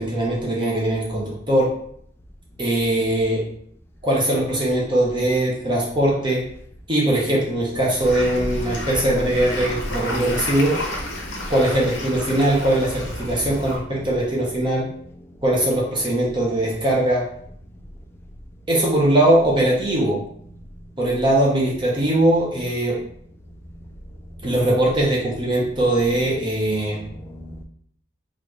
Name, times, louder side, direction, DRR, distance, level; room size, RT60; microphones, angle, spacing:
voice 1, 0.0-1.7 2.6-3.4 4.0-6.4 6.9-10.8 11.5-14.9 15.4-17.2 18.7-20.2 21.0-23.0 24.4-27.0, right 1 dB, 25° right, 0.7 m, -20 dB
sound 1, 8.0-13.8, left 1 dB, 65° left, 0.7 m, -31 dB
voice 2, 11.2-11.5 12.3-12.4 14.0-14.1 27.1-27.6, left 1 dB, 10° left, 0.3 m, -39 dB
4.0 x 2.4 x 3.0 m
head